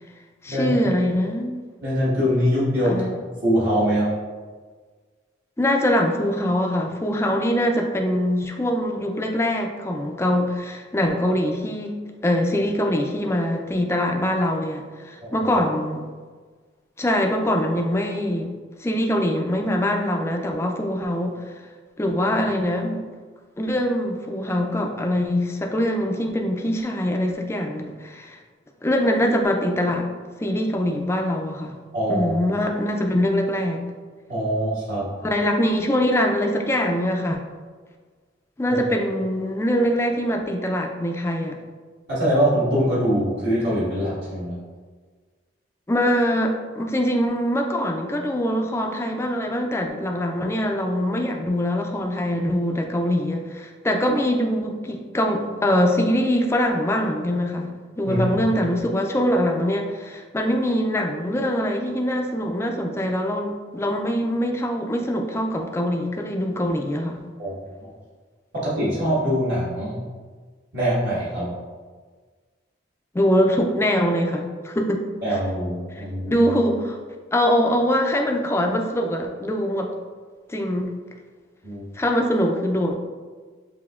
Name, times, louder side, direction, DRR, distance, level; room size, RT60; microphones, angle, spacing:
voice 1, 0.4-1.5 2.8-3.1 5.6-16.0 17.0-18.5 18.8-21.4 22.0-23.0 23.6-28.4 28.8-30.1 30.4-31.8 32.1-33.8 35.2-37.4 38.6-41.6 45.9-57.7 58.0-67.2 73.1-75.0 75.3-75.4 75.9-77.0 77.3-79.9 80.5-80.9 81.9-83.0, equal, 15° left, 2 dB, 0.4 m, -23 dB
voice 2, 1.8-3.0 3.4-4.1 15.2-15.5 31.9-32.3 34.3-35.1 38.7-38.8 42.1-44.5 58.0-58.4 67.4-67.9 68.5-70.0 70.7-71.5 75.2-76.3 81.6-81.8, equal, 60° right, -9 dB, 1.4 m, -23 dB
6.8 x 2.8 x 2.4 m, 1.5 s
head